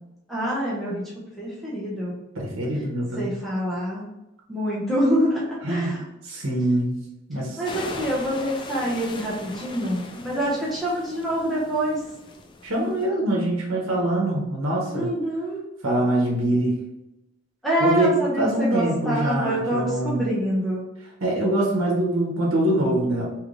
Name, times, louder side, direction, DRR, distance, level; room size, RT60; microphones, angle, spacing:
voice 1, 0.3-1.1 1.4-2.2 3.1-4.1 4.5-6.0 7.6-12.0 14.9-15.6 17.6-20.8, right 1 dB, ahead, -7 dB, 0.9 m, -26 dB
voice 2, 2.3-3.4 5.6-5.9 6.2-7.0 7.3-7.6 12.6-15.1 15.8-16.8 17.8-20.3 21.2-23.2, right 1 dB, 80° right, -2 dB, 1.0 m, -24 dB
sound 1, 7.6-13.1, left 3 dB, 25° left, 0.4 m, -39 dB
3.2 x 3.0 x 3.8 m, 0.94 s
head